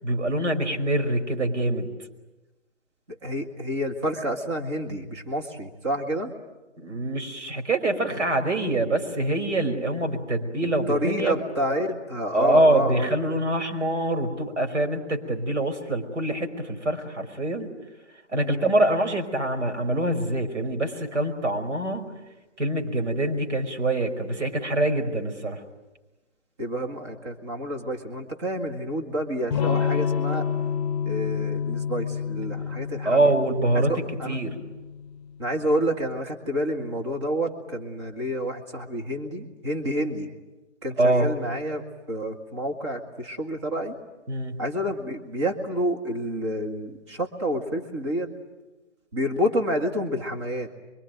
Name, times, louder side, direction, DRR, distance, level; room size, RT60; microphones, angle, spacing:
voice 1, 0.0-1.9 6.8-11.4 12.3-17.7 18.3-22.1 22.6-25.6 33.0-33.9 34.3-34.6 41.0-41.3 44.3-44.6, right 1 dB, 75° right, 5 dB, 5.3 m, -25 dB
voice 2, 3.1-6.3 10.9-13.1 18.4-18.7 26.6-30.5 31.1-33.2 33.7-34.4 35.4-40.3 40.8-44.0 44.6-48.3 49.1-50.7, equal, 25° right, 2 dB, 2.0 m, -29 dB
Electric guitar / Strum, 29.5-35.2, left 7 dB, 25° left, 4.6 m, -28 dB
25.5 x 24.0 x 9.2 m, 1.1 s
hypercardioid pair, 175°, 36 cm